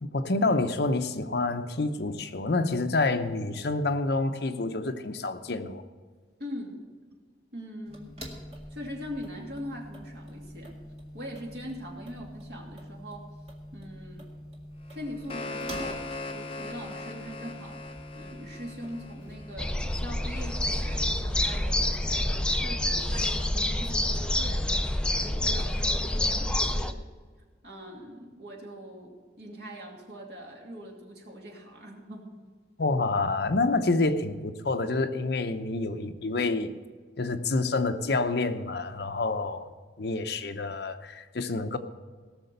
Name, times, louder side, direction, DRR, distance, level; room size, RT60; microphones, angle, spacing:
voice 1, 0.0-5.8 32.8-36.7 37.2-39.7 40.0-41.8, left 3 dB, 60° left, 9 dB, 0.7 m, -28 dB
voice 2, 6.4-6.8 7.5-8.2 8.7-10.8 11.1-13.3 13.7-14.3 14.9-16.1 16.3-24.7 25.2-27.0 27.6-32.4, equal, 60° right, -1 dB, 2.6 m, -42 dB
sound 1, 7.9-25.8, equal, 35° right, 2.1 m, -45 dB
sound 2, 14.9-19.9, left 3 dB, 30° left, 0.9 m, -40 dB
sound 3, 19.6-26.9, left 1 dB, 5° left, 0.4 m, -27 dB
18.0 x 6.6 x 6.7 m, 1.5 s
head